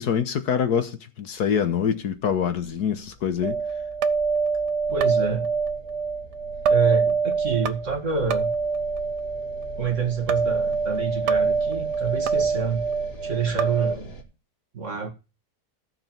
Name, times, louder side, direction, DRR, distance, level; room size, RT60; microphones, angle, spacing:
voice 1, 0.0-3.6, left 7 dB, 70° left, 1.7 m, -25 dB
sound 1, 2.0-14.2, right 2 dB, 85° left, 3.3 m, -43 dB
sound 2, 3.4-14.0, right 5 dB, 80° right, 1.5 m, -25 dB
voice 2, 4.9-5.5 6.7-8.5 9.8-12.9 13.2-14.1 14.7-15.1, right 5 dB, 45° right, 2.3 m, -27 dB
16.0 x 6.8 x 4.4 m
omnidirectional pair, 1.8 m